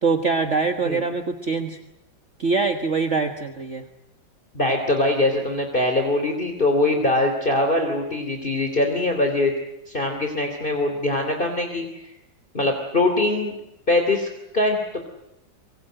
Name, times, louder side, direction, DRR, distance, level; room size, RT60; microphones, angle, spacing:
voice 1, 0.0-1.8 2.4-3.9, right 4 dB, 40° right, 6 dB, 1.7 m, -23 dB
voice 2, 4.5-9.5 9.9-12.1 12.5-13.5 13.9-15.0, left 2 dB, 25° left, 4 dB, 3.1 m, -22 dB
26.0 x 23.0 x 7.8 m, 0.88 s
omnidirectional pair, 2.0 m